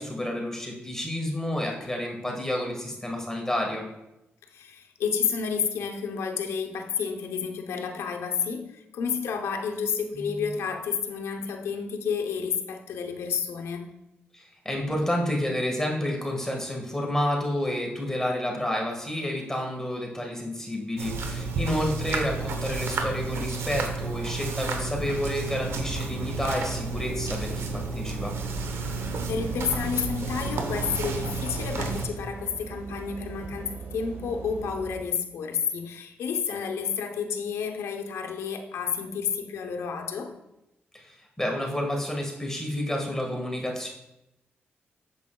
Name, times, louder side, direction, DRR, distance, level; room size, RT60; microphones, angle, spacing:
voice 1, 0.0-3.9 10.1-10.5 14.3-28.3 40.9-43.9, left 1 dB, 10° left, 0 dB, 1.6 m, -30 dB
voice 2, 4.5-13.9 29.0-40.3, left 6 dB, 80° left, 4 dB, 0.8 m, -30 dB
sound 1, 21.0-32.1, right 3 dB, 75° right, 0.9 m, -31 dB
sound 2, 25.7-34.9, right 5 dB, 60° right, 2.0 m, -40 dB
8.2 x 7.0 x 2.3 m, 0.91 s
supercardioid pair, 55°, 4 cm